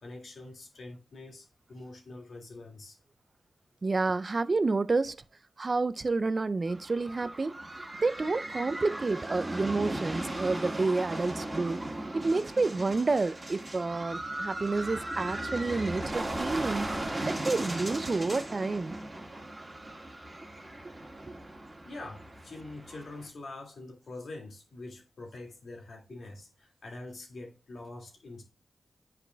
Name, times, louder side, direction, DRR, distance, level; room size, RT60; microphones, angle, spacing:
voice 1, 0.0-3.0 21.8-28.4, left 2 dB, 80° left, 2.1 m, -45 dB
voice 2, 3.8-5.2 5.6-7.6 8.0-11.8 12.1-16.9 17.3-19.0, right 3 dB, 45° right, 0.4 m, -29 dB
sound 1, 6.7-23.3, right 1 dB, 25° right, 1.8 m, -37 dB
9.7 x 4.9 x 2.2 m
cardioid pair, 60°, 0 cm